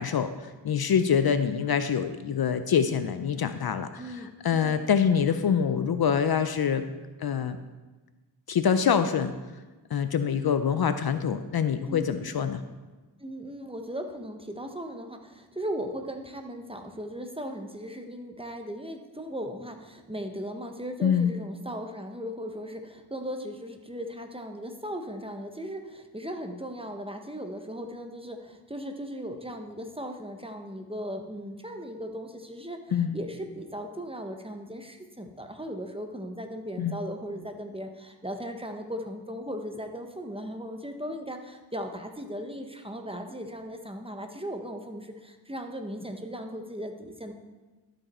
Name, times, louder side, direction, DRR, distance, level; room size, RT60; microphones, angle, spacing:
voice 1, 0.0-6.9 7.2-7.6 8.5-9.3 9.9-12.6 21.0-21.3 32.9-33.2 36.8-37.0, left 7 dB, 55° left, 11 dB, 0.5 m, -25 dB
voice 2, 4.0-4.8 11.9-12.1 13.2-47.3, equal, 10° right, 5 dB, 0.8 m, -37 dB
12.0 x 5.3 x 4.2 m, 1.2 s
wide cardioid pair, 90°, 46 cm